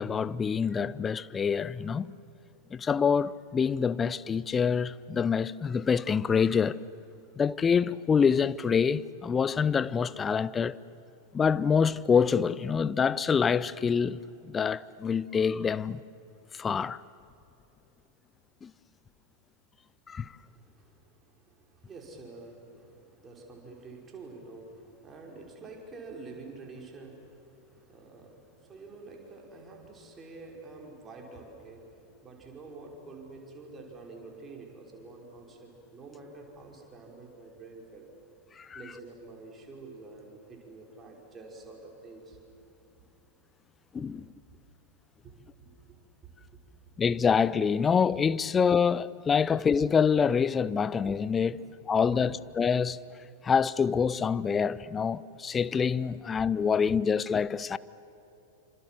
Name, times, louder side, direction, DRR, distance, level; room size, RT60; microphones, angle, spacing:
voice 1, 0.0-2.1 2.7-6.8 7.4-10.8 11.3-16.0 16.5-17.0 18.6-18.7 20.1-20.3 38.6-38.8 43.9-44.3 47.0-51.6 51.9-53.0 53.4-57.8, left 6 dB, 20° left, 0.6 m, -26 dB
voice 2, 20.4-38.1 38.7-42.4 44.0-44.2 44.5-44.6 45.2-46.6 51.5-51.6, right 3 dB, 20° right, 5.2 m, -48 dB
27.5 x 26.5 x 7.7 m
figure-of-eight pair, 90°, 0 cm